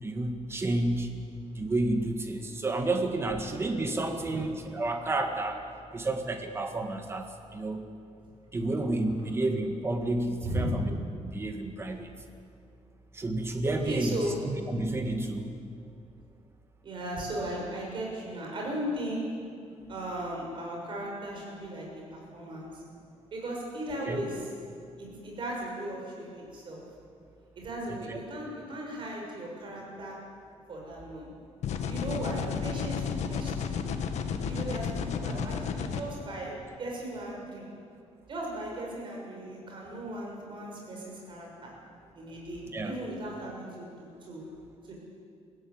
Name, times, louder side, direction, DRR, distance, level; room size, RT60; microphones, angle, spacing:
voice 1, 0.0-1.1 1.5-5.6 5.9-7.8 8.5-12.1 13.1-15.5 24.0-24.2 27.9-28.2 35.3-35.5 42.7-42.9, right 2 dB, 20° right, 5 dB, 2.0 m, -30 dB
voice 2, 13.8-14.4 16.8-19.2 19.9-21.9 22.1-22.7 23.3-24.5 25.0-26.8 27.5-30.1 30.7-31.3 31.9-33.8 34.5-37.6 38.3-41.7 42.1-44.4 44.9-45.0, right 1 dB, 45° right, -2 dB, 6.9 m, -37 dB
sound 1, 31.6-36.0, left 6 dB, 70° left, 1.7 m, -32 dB
23.0 x 15.5 x 9.7 m, 2.4 s
cardioid pair, 175°, 12 cm